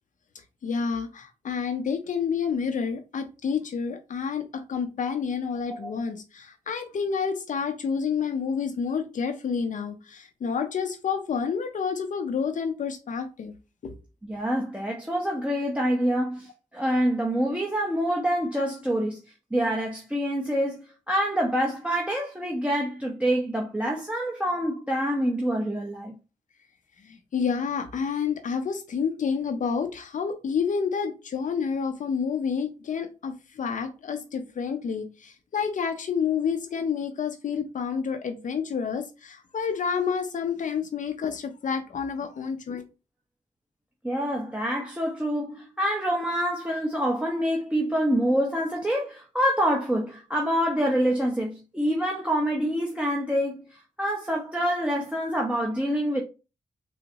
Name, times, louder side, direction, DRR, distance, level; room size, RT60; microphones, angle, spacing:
voice 1, 0.6-13.5 13.8-13.9 27.0-42.8, left 6 dB, 60° left, 0.6 m, -29 dB
voice 2, 14.2-19.2 19.5-20.8 21.1-26.1 44.0-56.2, equal, 10° right, 0.7 m, -26 dB
3.8 x 2.1 x 2.7 m
cardioid pair, 50°, 15 cm